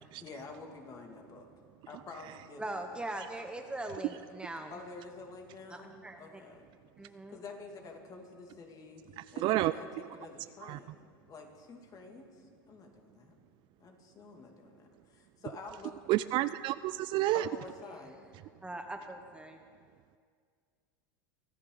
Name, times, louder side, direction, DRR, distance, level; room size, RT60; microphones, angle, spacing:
voice 1, 0.2-1.5 1.9-2.7 4.7-6.7 7.0-9.0 9.3-11.0 11.3-13.4 13.8-16.0 17.3-18.2, left 3 dB, 35° left, 3 dB, 2.5 m, -48 dB
voice 2, 2.6-4.8 5.7-6.4 7.0-7.4 18.6-19.6, right 2 dB, 10° right, 5 dB, 0.9 m, -41 dB
voice 3, 9.2-9.7 10.6-10.8 16.1-17.5, right 16 dB, 45° right, 15 dB, 0.4 m, -30 dB
24.0 x 13.5 x 4.0 m, 2.1 s
hypercardioid pair, 105°, 11 cm